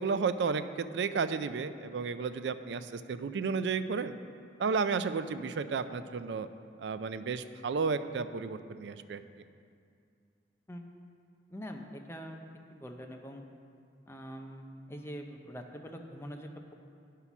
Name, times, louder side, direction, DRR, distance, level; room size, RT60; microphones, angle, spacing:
voice 1, 0.0-4.1 4.6-6.5 6.8-9.2, right 5 dB, 70° right, 12 dB, 0.4 m, -32 dB
voice 2, 11.5-12.4 12.7-13.4 14.1-16.7, equal, 15° left, 3 dB, 0.5 m, -44 dB
9.7 x 5.6 x 5.9 m, 2.4 s
head